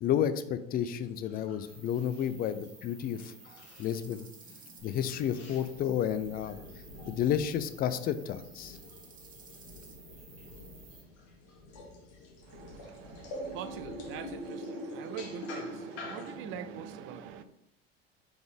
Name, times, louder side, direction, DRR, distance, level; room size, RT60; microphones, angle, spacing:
voice 1, 0.0-3.3 3.8-4.3 4.8-6.6 7.1-8.8, left 9 dB, 30° left, 0.4 m, -31 dB
sound 1, 0.9-16.3, left 1 dB, 55° left, 1.2 m, -47 dB
sound 2, 1.7-11.0, right 5 dB, 25° right, 0.8 m, -55 dB
sound 3, 4.8-14.5, left 2 dB, 80° left, 1.2 m, -52 dB
voice 2, 12.4-17.4, right 7 dB, 45° right, 0.4 m, -43 dB
3.9 x 3.4 x 3.5 m
hypercardioid pair, 75°, 30 cm